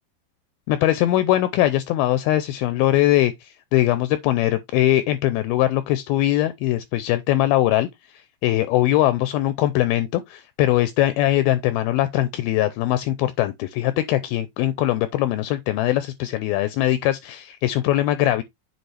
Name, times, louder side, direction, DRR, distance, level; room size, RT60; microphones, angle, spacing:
voice 1, 0.7-7.9 8.4-18.4, left 14 dB, 80° left, 2.3 m, -21 dB
7.9 x 4.7 x 3.2 m
omnidirectional pair, 4.7 m